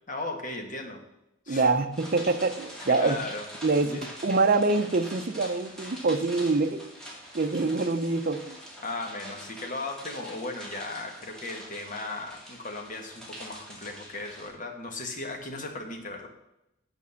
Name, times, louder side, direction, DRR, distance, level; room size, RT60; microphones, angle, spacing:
voice 1, 0.1-1.0 1.4-1.7 2.9-3.4 3.8-4.0 8.8-16.3, left 2 dB, 40° left, 3 dB, 1.5 m, -36 dB
voice 2, 1.5-3.2 3.6-6.8 7.3-8.6, right 3 dB, 45° right, 9 dB, 0.6 m, -25 dB
sound 1, 1.9-14.5, equal, 5° left, 2.3 m, -44 dB
9.0 x 5.2 x 7.0 m, 0.84 s
head